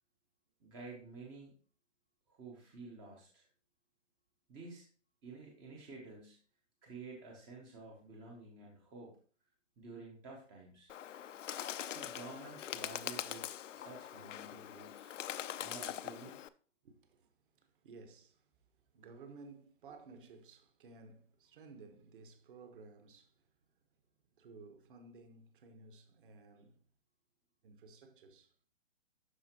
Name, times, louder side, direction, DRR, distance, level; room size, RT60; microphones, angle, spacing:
voice 1, 0.6-1.6 2.3-3.5 4.5-4.9 5.2-6.4 6.8-9.2 9.8-10.9 11.8-13.5 13.7-15.1 15.6-16.4, right 3 dB, 10° right, 0.6 m, -51 dB
Bird, 10.9-16.5, left 10 dB, 70° left, 0.5 m, -43 dB
voice 2, 16.8-18.5 18.9-23.4 24.4-26.8 27.6-28.5, right 4 dB, 40° right, 1.2 m, -56 dB
11.5 x 4.3 x 2.8 m
hypercardioid pair, 150°, 39 cm